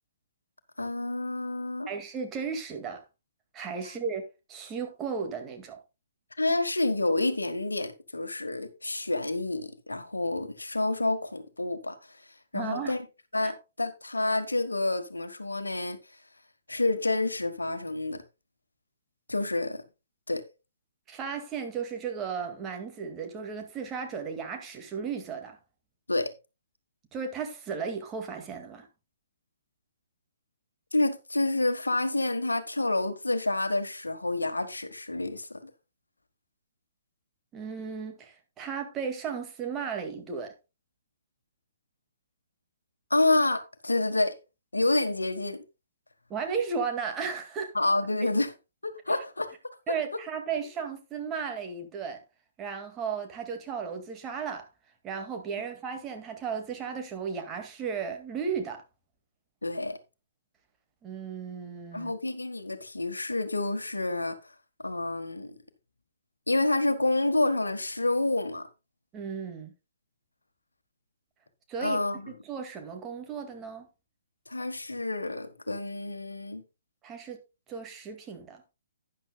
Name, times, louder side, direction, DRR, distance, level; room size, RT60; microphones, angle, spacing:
voice 1, 0.8-1.9 6.4-12.2 12.5-13.0 13.3-16.0 16.7-18.2 19.3-19.8 20.3-20.4 26.1-26.3 30.9-35.7 43.1-44.4 44.7-45.6 47.7-48.5 48.8-49.5 59.6-60.0 61.9-64.4 64.8-65.6 66.5-68.7 71.8-72.3 74.5-76.6, left 2 dB, 80° left, 1.4 m, -28 dB
voice 2, 1.9-3.0 3.5-4.2 4.5-5.8 12.5-12.9 13.4-13.5 21.1-25.6 27.1-28.9 37.5-40.5 46.3-47.7 48.2-48.3 49.9-52.2 52.6-54.7 55.0-58.8 61.0-62.1 69.1-69.7 71.7-72.0 72.3-73.9 77.0-77.4 77.7-78.7, right 6 dB, 20° right, 2.1 m, -35 dB
12.0 x 10.0 x 2.3 m
figure-of-eight pair, 125°, 0 cm